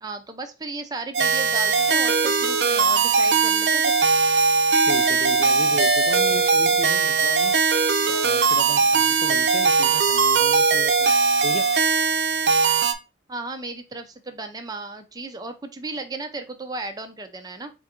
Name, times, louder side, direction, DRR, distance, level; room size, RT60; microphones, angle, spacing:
voice 1, 0.0-3.9 8.0-8.3 8.6-8.8 13.3-17.7, right 3 dB, 20° right, 0.5 m, -35 dB
sound 1, 1.1-12.9, right 5 dB, 60° right, 0.6 m, -20 dB
voice 2, 4.9-7.6 8.1-11.1 11.4-11.7, left 3 dB, 45° left, 0.5 m, -35 dB
4.4 x 2.5 x 4.2 m
head